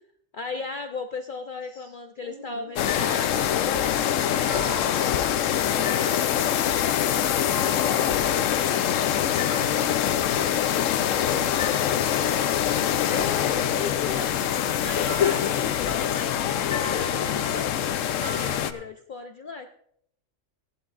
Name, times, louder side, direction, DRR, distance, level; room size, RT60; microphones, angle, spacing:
voice 1, 0.3-6.3 8.1-8.4 13.0-14.4 14.7-19.7, left 4 dB, 50° left, 5 dB, 0.7 m, -37 dB
voice 2, 1.7-2.7 7.7-10.6 10.8-13.0, right 1 dB, 35° right, -2 dB, 5.3 m, -45 dB
sound 1, 2.8-18.7, left 10 dB, 85° left, 1.0 m, -24 dB
sound 2, 2.8-18.8, left 3 dB, 35° left, 2.6 m, -40 dB
17.5 x 11.5 x 2.5 m, 0.68 s
omnidirectional pair, 1.3 m